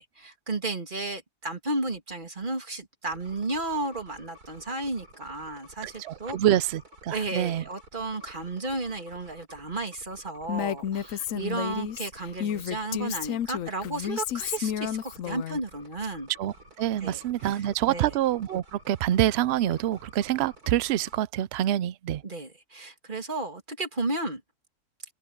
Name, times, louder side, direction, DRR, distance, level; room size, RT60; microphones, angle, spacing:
voice 1, 0.0-6.4 7.1-16.3 17.0-17.6 17.9-18.1 22.2-24.4, right 2 dB, 30° right, 2.5 m, -33 dB
sound 1, 3.1-21.2, right 1 dB, 70° right, 4.7 m, -52 dB
voice 2, 5.8-7.6 16.4-22.2, right 12 dB, 90° right, 0.5 m, -26 dB
Female speech woman speaking, 10.5-15.6, left 9 dB, 65° left, 1.0 m, -31 dB
omnidirectional pair, 1.7 m